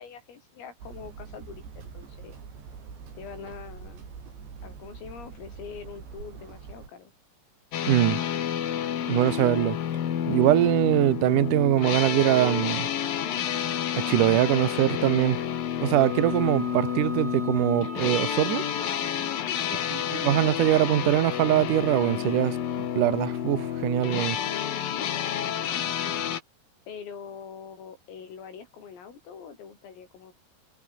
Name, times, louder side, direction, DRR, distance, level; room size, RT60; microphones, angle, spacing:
voice 1, 0.0-2.4 3.1-4.1 4.6-7.1 19.6-19.9 24.4-26.2 26.9-30.3, left 6 dB, 80° left, 8.2 m, -44 dB
Hammer, 0.8-6.9, right 6 dB, 60° right, 7.8 m, -44 dB
sound 1, 7.7-26.4, left 10 dB, 55° left, 3.2 m, -30 dB
voice 2, 7.9-8.2 9.1-9.8 10.3-12.9 13.9-15.4 15.8-18.6 19.9-24.4, right 13 dB, 85° right, 1.8 m, -23 dB
Wind instrument woodwind instrument, 16.0-19.6, right 3 dB, 35° right, 8.8 m, -41 dB
omnidirectional pair, 5.9 m